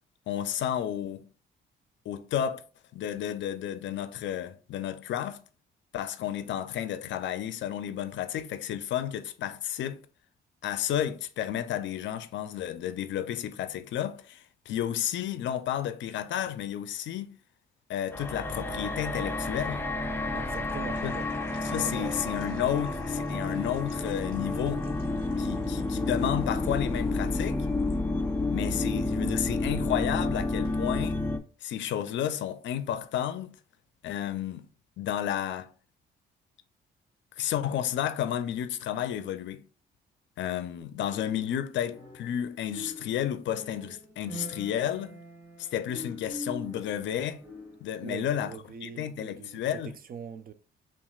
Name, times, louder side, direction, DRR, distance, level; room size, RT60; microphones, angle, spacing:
voice 1, 0.3-1.3 2.1-2.6 2.9-5.4 5.9-10.0 10.6-17.3 17.9-19.8 21.0-21.1 21.6-24.9 25.4-27.7 28.5-31.2 31.6-33.6 34.0-34.7 35.0-35.7 37.4-39.6 40.4-45.2 45.6-47.4 47.8-48.5 48.8-49.9, left 10 dB, 70° left, 0.4 m, -32 dB
sound 1, 18.1-31.4, left 2 dB, 10° left, 0.5 m, -30 dB
sound 2, 18.2-18.6 20.0-28.0 28.3-28.9 29.2-29.5 30.2-30.3 30.6-30.7, equal, 80° right, 1.2 m, -53 dB
voice 2, 20.3-21.3 21.7-22.1 48.0-50.5, right 6 dB, 50° right, 0.5 m, -42 dB
sound 3, 41.1-42.4 42.7-48.0, left 1 dB, 10° right, 1.3 m, -44 dB
5.7 x 2.4 x 2.3 m
cardioid pair, 90°, 20 cm